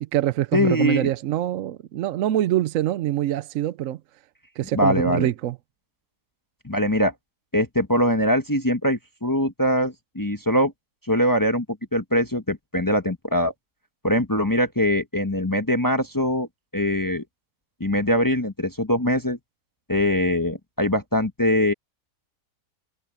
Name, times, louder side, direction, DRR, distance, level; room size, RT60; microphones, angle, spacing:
voice 1, 0.0-4.0 4.6-5.6, right 13 dB, 65° right, 0.8 m, -24 dB
voice 2, 0.5-1.1 4.7-5.3 6.6-7.1 7.5-10.7 11.1-11.6 11.9-13.5 14.0-16.5 16.7-17.2 17.8-19.4 19.9-21.7, equal, 15° left, 0.9 m, -22 dB
omnidirectional pair, 1.7 m